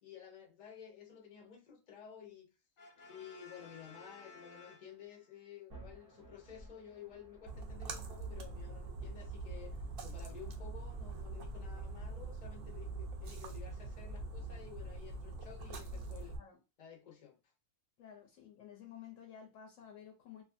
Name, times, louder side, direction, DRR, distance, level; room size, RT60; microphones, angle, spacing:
voice 1, 0.0-2.5 3.1-16.4 16.8-17.5, left 8 dB, 40° left, 0.6 m, -53 dB
Brass instrument, 2.8-5.4, left 3 dB, 90° left, 0.4 m, -56 dB
sound 1, 5.7-13.7, right 2 dB, 35° right, 0.6 m, -61 dB
Splash splatter, 7.5-16.4, right 3 dB, 75° right, 0.5 m, -43 dB
voice 2, 18.0-20.4, left 9 dB, 70° left, 0.9 m, -53 dB
2.5 x 2.5 x 2.5 m
omnidirectional pair, 1.5 m